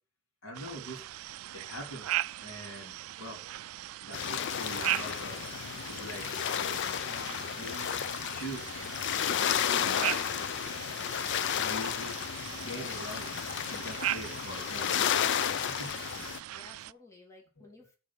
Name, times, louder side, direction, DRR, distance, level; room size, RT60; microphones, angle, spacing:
voice 1, 0.4-1.0 1.5-2.1 2.4-3.4 4.0-6.8 7.5-9.2 9.5-10.2 11.5-12.2 12.6-16.0 16.3-16.5 17.6-17.7, equal, 90° left, 3 dB, 3.2 m, -44 dB
sound 1, 0.5-16.9, right 14 dB, 85° right, 0.3 m, -39 dB
sound 2, 4.1-16.4, left 9 dB, 60° left, 0.4 m, -32 dB
voice 2, 16.5-17.9, left 2 dB, 15° left, -2 dB, 2.8 m, -56 dB
6.8 x 6.3 x 6.1 m, 0.34 s
head